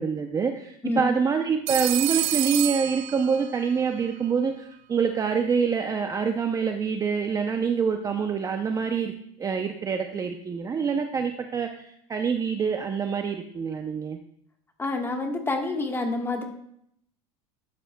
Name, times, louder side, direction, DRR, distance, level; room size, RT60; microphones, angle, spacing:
voice 1, 0.0-9.1 9.4-14.2, right 6 dB, 20° right, 5 dB, 0.5 m, -26 dB
Telephone, 1.7-3.7, right 18 dB, 75° right, 0.5 m, -28 dB
voice 2, 14.8-16.4, left 2 dB, 15° left, 3 dB, 1.3 m, -28 dB
12.5 x 8.9 x 2.2 m, 0.71 s
supercardioid pair, 135°, 17 cm